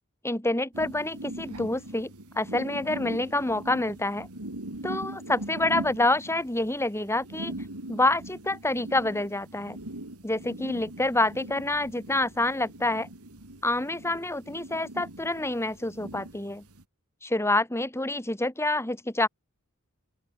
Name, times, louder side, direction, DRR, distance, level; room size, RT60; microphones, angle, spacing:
voice 1, 0.2-4.3 4.8-7.5 7.9-9.8 10.2-13.1 13.6-16.6 17.2-19.3, left 2 dB, 10° left, 2.5 m, -27 dB
sound 1, 0.7-16.8, right 1 dB, 85° right, 3.4 m, -41 dB
open air
head